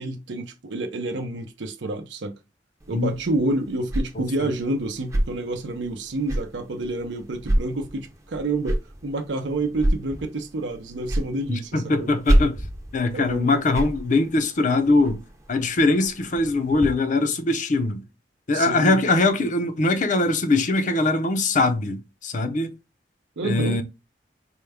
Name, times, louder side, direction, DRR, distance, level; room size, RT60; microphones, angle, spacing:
voice 1, 0.0-2.3 2.9-12.1 13.1-13.5 18.5-19.0 23.4-23.8, right 2 dB, 80° right, 0.6 m, -28 dB
Swipes noisy, 2.8-16.9, right 1 dB, 15° right, 0.6 m, -29 dB
voice 2, 11.5-12.6 12.9-15.2 15.5-18.0 18.5-22.7 23.4-23.8, left 2 dB, 45° left, 0.5 m, -22 dB
4.5 x 2.1 x 3.4 m
head